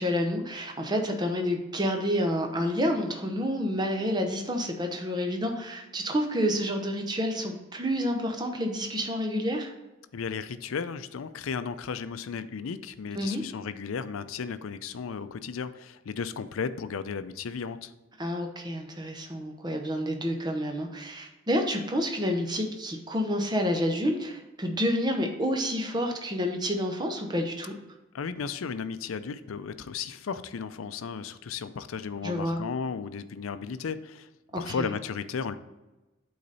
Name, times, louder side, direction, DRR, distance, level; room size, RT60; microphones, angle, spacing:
voice 1, 0.0-9.7 13.1-13.4 18.2-27.7 32.2-32.6 34.5-34.9, equal, 20° right, 3 dB, 0.8 m, -29 dB
voice 2, 10.1-17.9 28.1-34.3 34.6-35.6, left 6 dB, 90° left, 12 dB, 0.5 m, -34 dB
8.5 x 4.0 x 4.0 m, 1.1 s
head